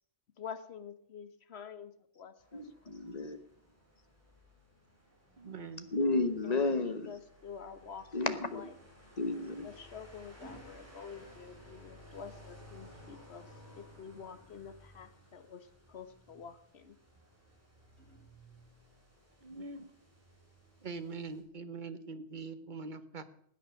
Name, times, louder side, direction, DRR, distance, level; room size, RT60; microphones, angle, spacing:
voice 1, 0.4-2.7 6.4-8.1 8.5-8.7 9.6-13.5 13.8-16.9, left 6 dB, 70° left, 1.3 m, -48 dB
sound 1, 2.4-21.4, equal, 10° right, 4.1 m, -58 dB
voice 2, 2.5-3.4 5.9-7.1 8.1-8.7 9.2-9.7, left 3 dB, 40° left, 1.1 m, -32 dB
sound 2, 4.8-7.3 8.9-12.1 13.9-15.0 17.0-18.8 20.0-20.3, right 1 dB, 65° right, 4.5 m, -61 dB
voice 3, 5.4-5.9 19.4-19.9 20.8-23.2, right 4 dB, 45° right, 1.1 m, -43 dB
16.5 x 9.2 x 6.4 m
omnidirectional pair, 1.2 m